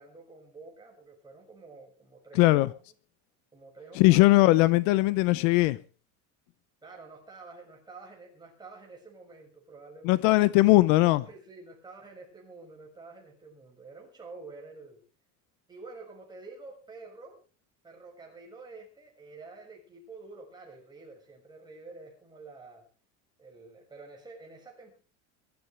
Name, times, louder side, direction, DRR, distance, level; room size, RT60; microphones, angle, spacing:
voice 1, 0.0-2.7 3.5-4.2 6.8-10.3 11.2-15.0 15.7-17.4 17.8-22.9 23.4-24.9, right 3 dB, 10° right, 6.3 m, -48 dB
voice 2, 4.0-5.8 10.0-11.2, left 19 dB, 70° left, 0.9 m, -20 dB
22.5 x 13.0 x 3.4 m
cardioid pair, 155°, 39 cm